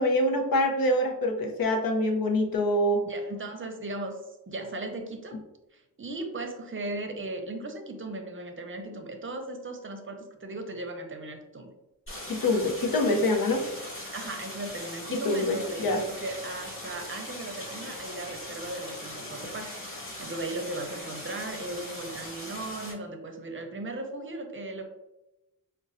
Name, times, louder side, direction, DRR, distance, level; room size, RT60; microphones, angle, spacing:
voice 1, 0.0-3.0 12.3-13.6 15.1-16.0, left 1 dB, 80° left, 4 dB, 0.7 m, -25 dB
voice 2, 3.1-4.2 4.5-5.4 5.7-11.7 13.1-13.2 14.1-24.9, right 2 dB, 35° right, 5 dB, 0.6 m, -37 dB
Stream, 12.1-22.9, left 1 dB, 35° left, 1.5 m, -40 dB
5.1 x 2.2 x 2.5 m, 0.96 s
wide cardioid pair, 85°, 35 cm